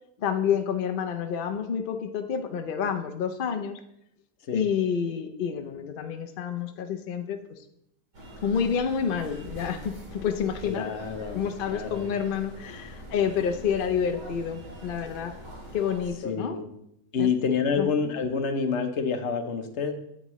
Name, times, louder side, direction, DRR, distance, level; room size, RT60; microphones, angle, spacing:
voice 1, 0.2-3.8 4.5-7.4 8.4-10.9 11.3-15.3 15.7-16.6 17.2-17.3 17.8-17.9, left 7 dB, 80° left, 7 dB, 0.4 m, -28 dB
sound 1, 8.1-16.1, equal, 80° right, 2.6 m, -43 dB
voice 2, 10.6-12.1 16.2-16.6 17.1-19.9, left 6 dB, 55° left, 7 dB, 0.9 m, -28 dB
9.2 x 8.6 x 3.1 m, 0.80 s
omnidirectional pair, 1.8 m